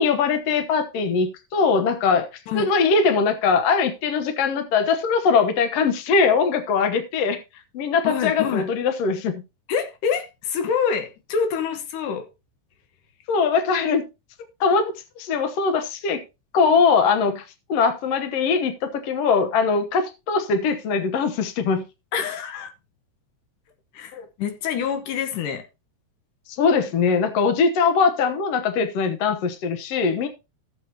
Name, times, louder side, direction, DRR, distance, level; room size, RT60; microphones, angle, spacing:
voice 1, 0.0-2.3 2.6-7.4 7.7-9.4 13.3-14.0 14.6-16.2 16.5-17.4 17.7-21.9 24.1-24.3 26.6-30.3, left 5 dB, 65° left, 1.8 m, -21 dB
voice 2, 8.0-8.7 9.7-12.3 22.1-22.7 23.9-25.6, left 7 dB, 80° left, 2.8 m, -26 dB
13.5 x 7.6 x 2.8 m
omnidirectional pair, 3.7 m